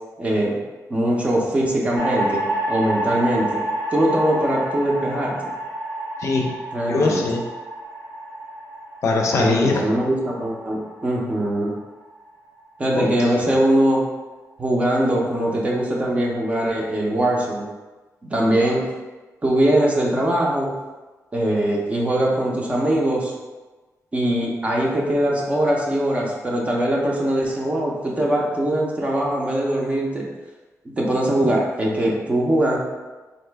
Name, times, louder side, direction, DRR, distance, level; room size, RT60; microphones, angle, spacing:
voice 1, 0.2-0.6 0.9-3.6 3.9-5.5 6.7-7.3 9.4-11.7 12.8-14.0 14.6-17.7 18.2-18.8 19.4-20.7 21.3-23.3 24.1-30.3 30.8-32.8, right 1 dB, 20° right, -2 dB, 0.5 m, -21 dB
sound 1, 2.0-12.3, right 1 dB, 90° right, 0.8 m, -29 dB
voice 2, 6.2-6.5 6.9-7.4 9.0-9.8 12.9-13.1, left 3 dB, 55° left, 1 dB, 0.5 m, -21 dB
3.9 x 2.6 x 3.3 m, 1.2 s
wide cardioid pair, 175°, 6 cm